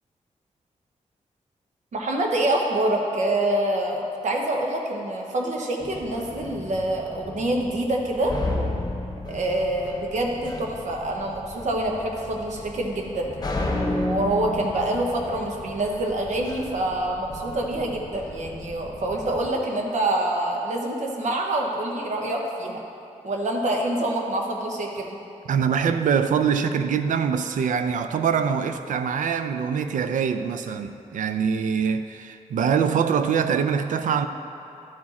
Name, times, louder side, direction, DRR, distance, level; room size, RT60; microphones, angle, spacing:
voice 1, 1.9-8.3 9.3-13.3 13.7-22.8 23.2-25.2, right 1 dB, 65° right, 1.0 m, -26 dB
sound 1, 5.8-19.5, left 2 dB, 30° left, 0.7 m, -34 dB
voice 2, 25.5-34.3, right 7 dB, 80° right, 0.4 m, -24 dB
12.0 x 4.7 x 4.2 m
wide cardioid pair, 150°, 13 cm